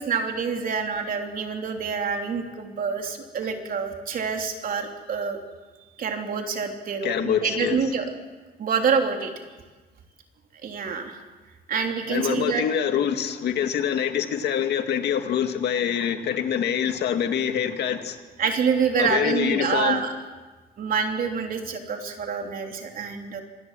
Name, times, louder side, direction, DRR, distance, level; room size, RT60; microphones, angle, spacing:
voice 1, 0.0-5.4 6.0-8.1 8.6-9.3 10.6-11.2 11.7-12.7 18.4-20.1 20.8-23.4, right 6 dB, 60° right, 3 dB, 3.5 m, -26 dB
voice 2, 7.0-7.8 12.1-18.2 19.0-20.0, left 8 dB, 80° left, 6 dB, 2.1 m, -25 dB
26.0 x 20.5 x 7.7 m, 1.3 s
cardioid pair, 140°, 17 cm